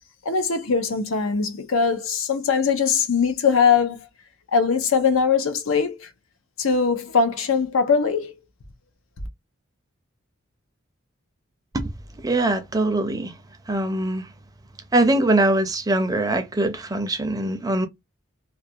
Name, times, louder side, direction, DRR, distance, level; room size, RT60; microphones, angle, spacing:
voice 1, 0.2-4.0 4.5-6.1 6.6-8.3, left 5 dB, 85° left, 0.6 m, -21 dB
voice 2, 12.2-13.3 13.7-14.3 14.9-17.9, right 2 dB, 20° right, 0.4 m, -22 dB
2.3 x 2.3 x 2.6 m
head